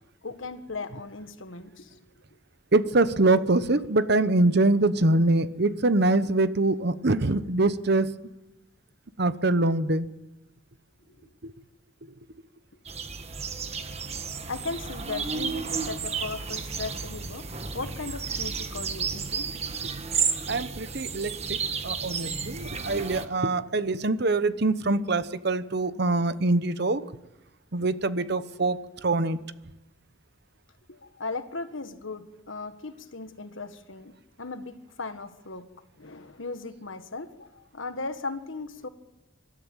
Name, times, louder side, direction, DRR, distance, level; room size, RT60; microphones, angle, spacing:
voice 1, 0.2-2.0 11.2-11.3 14.5-17.5 17.7-19.5 30.9-35.7 36.0-38.9, left 3 dB, 75° left, 1.6 m, -37 dB
voice 2, 2.7-8.1 9.2-10.1 11.4-11.5 12.0-12.1 20.5-27.0 27.7-29.4, right 2 dB, 55° right, 1.0 m, -24 dB
sound 1, 12.9-23.3, right 5 dB, 30° right, 1.4 m, -32 dB
26.0 x 13.0 x 9.1 m
head